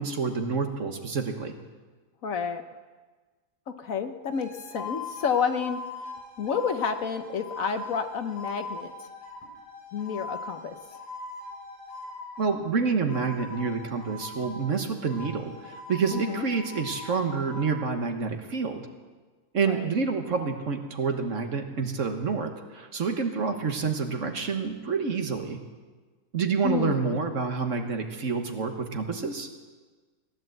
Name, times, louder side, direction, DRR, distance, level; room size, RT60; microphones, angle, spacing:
voice 1, 0.0-1.5 12.4-18.9 19.5-25.6 26.3-29.5, right 5 dB, 50° right, 5 dB, 1.5 m, -28 dB
voice 2, 2.2-2.6 3.8-5.8 6.4-8.9 9.9-10.7 16.1-16.5 19.7-19.9 26.6-27.2, left 6 dB, 60° left, 8 dB, 1.2 m, -30 dB
sound 1, 4.3-12.6 13.1-14.8 15.1-17.7, left 3 dB, 10° left, 5.4 m, -41 dB
17.5 x 10.5 x 7.9 m, 1.4 s
omnidirectional pair, 1.7 m